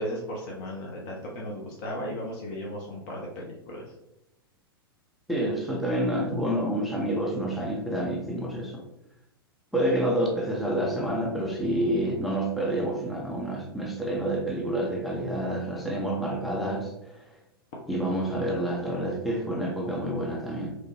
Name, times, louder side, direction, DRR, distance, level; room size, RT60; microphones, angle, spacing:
voice 1, 0.0-3.8, equal, 45° left, -2 dB, 0.6 m, -35 dB
voice 2, 5.3-8.8 9.7-17.3 17.9-20.7, right 1 dB, ahead, -2 dB, 0.4 m, -28 dB
3.1 x 2.0 x 3.0 m, 0.85 s
figure-of-eight pair, 100°, 13 cm